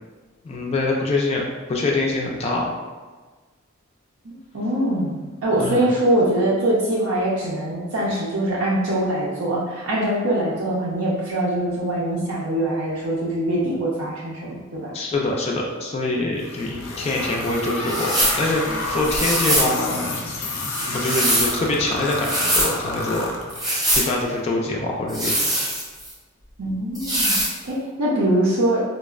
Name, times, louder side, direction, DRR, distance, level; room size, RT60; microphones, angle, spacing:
voice 1, 0.4-1.4 1.7-2.7 5.6-5.8 14.9-18.1 18.4-20.1 20.9-23.3 24.0-25.5, left 2 dB, 30° left, -1 dB, 0.3 m, -24 dB
voice 2, 4.2-14.9 26.6-27.4 27.6-28.8, right 1 dB, 80° right, -6 dB, 0.6 m, -23 dB
sound 1, 16.4-23.9, left 2 dB, 85° left, 0.5 m, -30 dB
sound 2, 17.9-18.4 19.1-19.7 20.7-21.6 22.1-22.7 23.5-24.1 25.1-26.1 26.9-27.5, right 1 dB, 20° right, 0.6 m, -22 dB
4.0 x 2.1 x 2.3 m, 1.3 s
head